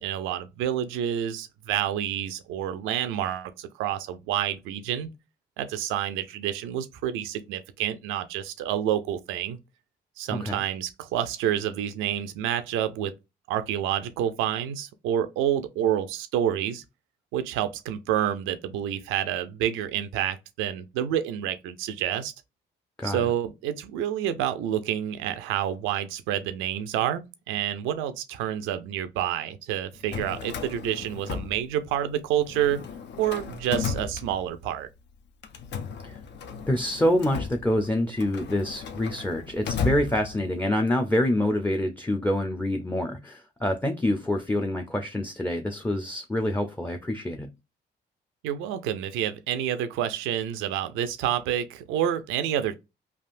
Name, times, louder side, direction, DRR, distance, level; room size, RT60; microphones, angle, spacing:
voice 1, 0.0-5.1 5.6-9.6 10.2-13.1 13.5-16.8 17.3-22.3 23.0-32.8 33.2-34.9 48.4-52.7, right 10 dB, 85° right, 0.5 m, -28 dB
voice 2, 10.3-10.6 23.0-23.3 36.0-36.2 36.7-47.5, left 1 dB, 10° left, 0.5 m, -26 dB
Drawer open or close, 29.9-32.1 32.4-34.8 35.4-40.7, left 5 dB, 60° left, 0.5 m, -35 dB
3.4 x 2.4 x 2.4 m
supercardioid pair, 60°, 20 cm